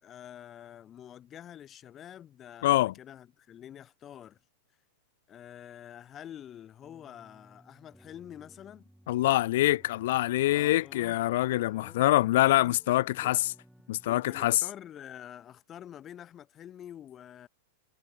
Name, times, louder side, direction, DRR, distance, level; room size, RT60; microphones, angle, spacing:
voice 1, 0.0-4.4 5.3-8.9 10.4-11.2 11.4-12.0 12.3-13.4 14.0-17.5, left 10 dB, 30° left, 3.2 m, -47 dB
voice 2, 2.6-2.9 9.1-13.5 13.9-14.6, left 16 dB, 65° left, 0.3 m, -25 dB
sound 1, 6.8-14.3, equal, ahead, 7.5 m, -59 dB
hypercardioid pair, 115°, 0 cm